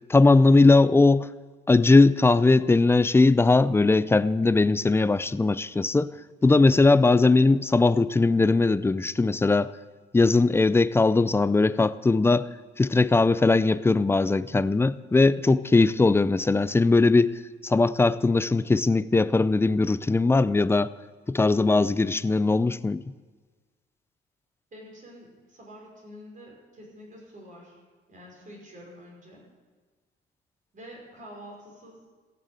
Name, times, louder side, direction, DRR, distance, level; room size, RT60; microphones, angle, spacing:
voice 1, 0.1-1.3 1.7-6.1 6.4-9.7 10.1-12.5 12.8-17.4 17.6-20.9 21.3-23.0, left 3 dB, 10° left, 0.4 m, -20 dB
voice 2, 24.7-27.8 28.1-29.4 30.7-32.0, equal, 40° right, 5.5 m, -47 dB
16.0 x 6.9 x 7.9 m
cardioid pair, 90°, 20 cm